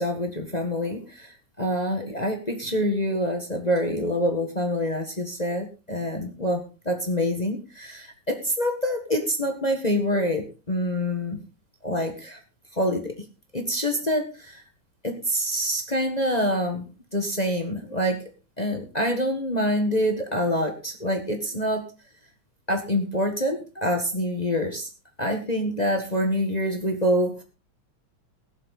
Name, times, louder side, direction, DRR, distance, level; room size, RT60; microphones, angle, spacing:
voice 1, 0.0-1.3 1.6-11.4 11.8-12.4 12.8-13.1 13.5-14.6 15.0-16.8 17.1-18.2 18.6-21.8 22.7-24.9 25.2-27.4, equal, 25° left, 4 dB, 0.8 m, -26 dB
21.0 x 7.5 x 4.1 m, 0.32 s
omnidirectional pair, 3.5 m